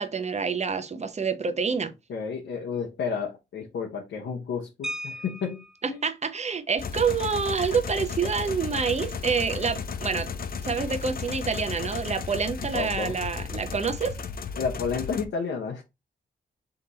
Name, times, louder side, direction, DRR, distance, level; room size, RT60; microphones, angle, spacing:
voice 1, 0.0-1.9 6.0-10.3 10.6-14.1, right 5 dB, 35° right, 0.8 m, -27 dB
voice 2, 2.1-6.0 12.6-13.2 14.5-15.8, left 5 dB, 80° left, 0.8 m, -31 dB
sound 1, 4.8-5.9 7.4-7.5 7.8-8.0 8.4-8.7, equal, 5° right, 0.5 m, -37 dB
sound 2, 6.8-15.2, left 6 dB, 50° left, 0.6 m, -34 dB
3.8 x 2.7 x 4.1 m
cardioid pair, 55°, 19 cm